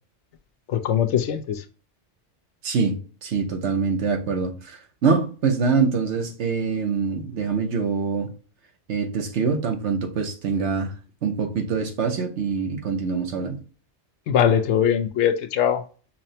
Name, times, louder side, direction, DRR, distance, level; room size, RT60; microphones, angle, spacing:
voice 1, 0.7-1.6 14.3-15.8, left 9 dB, 80° left, 0.9 m, -21 dB
voice 2, 2.6-2.9 3.2-8.3 8.9-10.9 11.2-13.6, right 5 dB, 80° right, 1.1 m, -24 dB
5.7 x 2.1 x 2.7 m
omnidirectional pair, 1.2 m